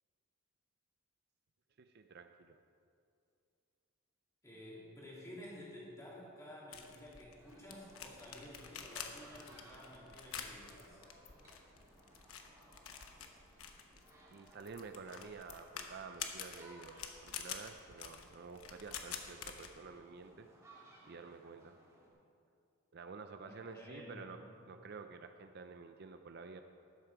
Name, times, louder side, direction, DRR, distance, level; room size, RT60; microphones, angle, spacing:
voice 1, 1.8-2.6 14.3-17.0 17.2-20.5 21.1-21.8 22.9-24.4 24.7-26.6, right 4 dB, 45° right, 7 dB, 0.4 m, -50 dB
voice 2, 4.4-11.0 23.4-24.7, left 1 dB, 15° left, -6 dB, 2.9 m, -52 dB
sound 1, 6.7-19.7, left 7 dB, 75° left, 1.0 m, -48 dB
sound 2, 7.3-22.1, right 2 dB, 15° right, 2.2 m, -62 dB
12.5 x 11.0 x 4.7 m, 2.5 s
head